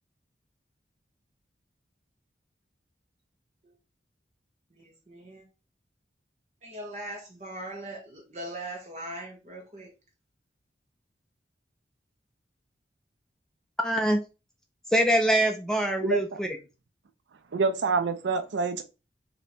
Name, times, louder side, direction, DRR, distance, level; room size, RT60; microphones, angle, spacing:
voice 1, 4.7-5.5 6.6-9.9, right 1 dB, 40° right, 1.3 m, -40 dB
voice 2, 13.8-14.2 14.9-16.6, right 1 dB, 5° left, 0.4 m, -24 dB
voice 3, 17.5-18.8, right 4 dB, 80° right, 0.4 m, -26 dB
3.2 x 2.8 x 4.2 m
head